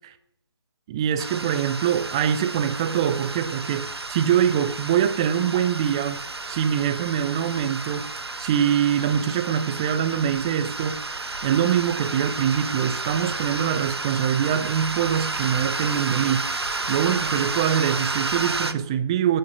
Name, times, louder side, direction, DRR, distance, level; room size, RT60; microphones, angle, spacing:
voice 1, 0.9-6.2 6.5-8.1 8.4-11.0 11.4-16.5 16.9-19.4, right 9 dB, 10° right, 0.5 m, -24 dB
sound 1, 1.2-18.7, right 3 dB, 65° right, 1.3 m, -31 dB
10.5 x 9.9 x 9.6 m
figure-of-eight pair, 150°, 14 cm